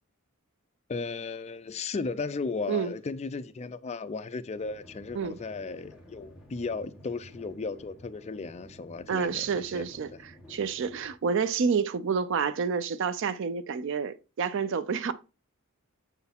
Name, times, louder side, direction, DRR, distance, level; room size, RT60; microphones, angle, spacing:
voice 1, 0.9-9.8 10.1-10.2, left 4 dB, 30° left, 0.4 m, -35 dB
sound 1, 4.5-11.1, equal, 5° right, 1.4 m, -52 dB
voice 2, 9.1-15.1, right 6 dB, 60° right, 0.4 m, -29 dB
6.9 x 4.6 x 3.5 m
head